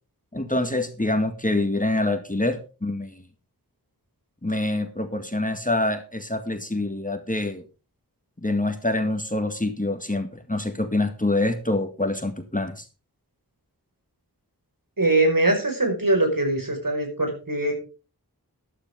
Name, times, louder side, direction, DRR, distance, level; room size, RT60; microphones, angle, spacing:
voice 1, 0.3-3.2 4.4-7.6 8.4-12.9, left 2 dB, 20° left, 7 dB, 1.8 m, -26 dB
voice 2, 15.0-17.7, right 2 dB, 60° right, 4 dB, 5.1 m, -22 dB
13.0 x 12.5 x 3.6 m, 0.34 s
wide cardioid pair, 50°, 38 cm